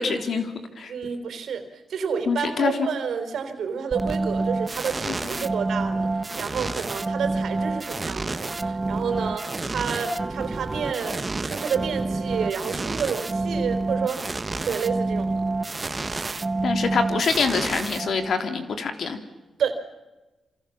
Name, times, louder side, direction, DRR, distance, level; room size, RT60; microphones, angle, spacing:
voice 1, 0.0-0.9 2.3-2.9 5.1-5.5 16.6-19.2, left 5 dB, 65° left, 7 dB, 3.4 m, -25 dB
voice 2, 0.9-6.1 6.4-14.3 14.6-15.4 19.6-19.8, right 6 dB, 75° right, 8 dB, 4.1 m, -30 dB
sound 1, 3.9-18.5, right 3 dB, 25° right, 1.3 m, -28 dB
27.5 x 27.0 x 7.2 m, 1.1 s
cardioid pair, 85°, 0 cm